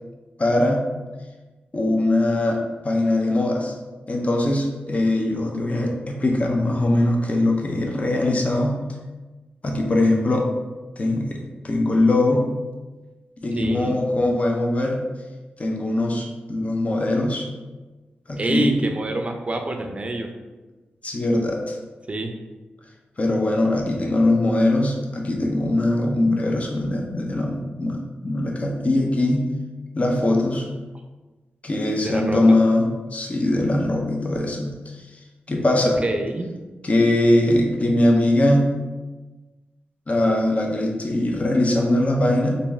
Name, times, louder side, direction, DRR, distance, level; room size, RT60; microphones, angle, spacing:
voice 1, 0.4-0.9 1.7-3.8 4.1-8.8 9.6-10.5 11.0-11.4 11.6-12.5 13.4-15.0 15.6-17.5 18.3-18.7 21.0-21.8 23.2-29.5 29.9-30.7 31.6-34.8 35.5-36.0 36.8-38.7 40.1-42.6, left 1 dB, 40° left, 1 dB, 0.5 m, -21 dB
voice 2, 13.6-14.0 18.4-20.3 22.1-22.3 32.0-32.4 36.0-36.5, right 2 dB, 35° right, 4 dB, 0.4 m, -26 dB
3.3 x 2.6 x 3.2 m, 1.2 s
wide cardioid pair, 80°, 4 cm